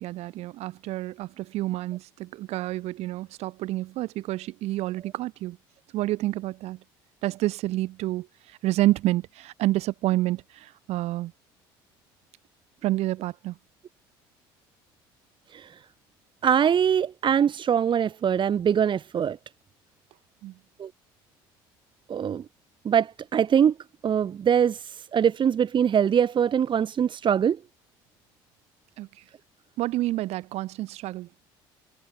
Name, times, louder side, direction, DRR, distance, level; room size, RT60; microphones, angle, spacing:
voice 1, 0.0-5.6 5.9-6.8 7.2-8.3 8.6-11.3 12.8-13.6 20.4-20.5 29.0-29.1 29.8-31.3, right 16 dB, 65° right, 7.1 m, -28 dB
voice 2, 16.4-19.4 20.8-20.9 22.1-22.4 22.9-23.7 24.0-27.6, right 8 dB, 45° right, 3.4 m, -23 dB
hypercardioid pair, 75°, 12 cm